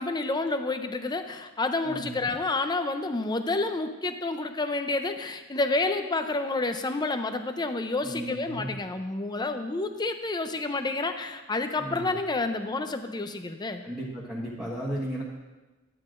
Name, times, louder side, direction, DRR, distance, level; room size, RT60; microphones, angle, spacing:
voice 1, 0.0-13.9, left 3 dB, 20° left, 7 dB, 0.5 m, -29 dB
voice 2, 1.8-2.2 8.0-8.7 11.8-12.1 13.8-15.2, right 1 dB, 5° right, -9 dB, 1.5 m, -35 dB
12.0 x 9.5 x 2.5 m, 1.2 s
head